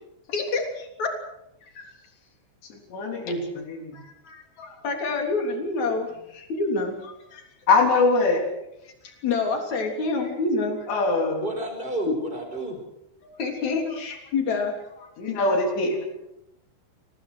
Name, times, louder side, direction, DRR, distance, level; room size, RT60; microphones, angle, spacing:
voice 1, 0.3-1.1 1.7-1.9 3.9-7.4 9.0-10.9 13.2-15.1, left 3 dB, 40° left, 3 dB, 4.1 m, -28 dB
voice 2, 2.9-4.0 7.7-8.4 10.9-11.5 15.2-16.0, left 3 dB, 55° left, 3 dB, 5.5 m, -22 dB
voice 3, 11.4-12.8, right 1 dB, 10° right, 4 dB, 4.6 m, -31 dB
27.5 x 18.5 x 6.3 m, 0.86 s
omnidirectional pair, 6.0 m